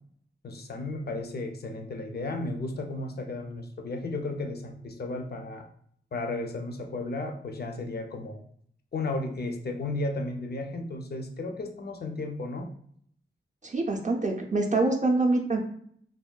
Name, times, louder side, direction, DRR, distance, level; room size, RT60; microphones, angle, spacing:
voice 1, 0.4-5.7 6.1-8.4 8.9-12.7, left 2 dB, 50° left, 4 dB, 0.5 m, -34 dB
voice 2, 13.6-15.6, right 2 dB, 35° right, 1 dB, 0.4 m, -25 dB
3.4 x 2.2 x 2.2 m, 0.63 s
wide cardioid pair, 75°, 21 cm